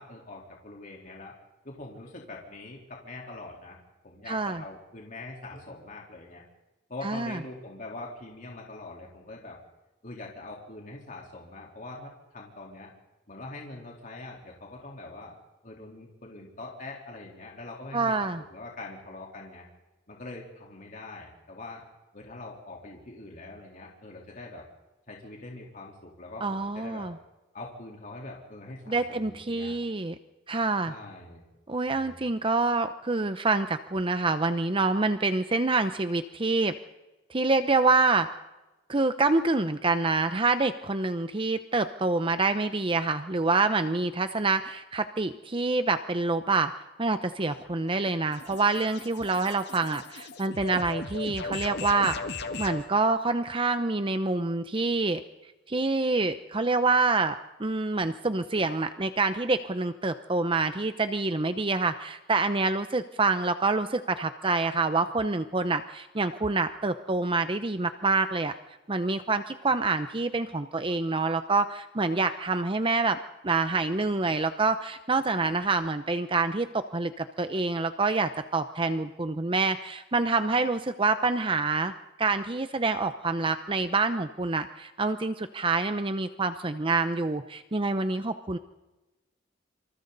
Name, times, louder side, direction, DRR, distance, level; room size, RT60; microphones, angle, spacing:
voice 1, 0.0-1.3 1.6-3.8 4.0-6.4 6.9-9.6 10.0-12.9 13.3-15.3 15.6-19.7 20.1-21.8 22.1-24.6 25.1-27.1 27.5-29.7 30.9-31.4 31.9-32.2, left 2 dB, 45° left, -2 dB, 3.8 m, -43 dB
voice 2, 4.3-4.6 7.0-7.4 17.9-18.4 26.4-27.1 28.9-30.1 30.5-30.9 31.7-36.7 37.3-38.3 38.9-46.7 47.0-52.2 52.6-55.2 55.7-68.5 68.9-73.2 73.4-81.9 82.2-88.6, right 3 dB, 30° right, 10 dB, 0.8 m, -26 dB
sound 1, 47.4-52.9, left 3 dB, 65° left, 1.7 m, -38 dB
27.5 x 26.5 x 4.1 m, 1.0 s
head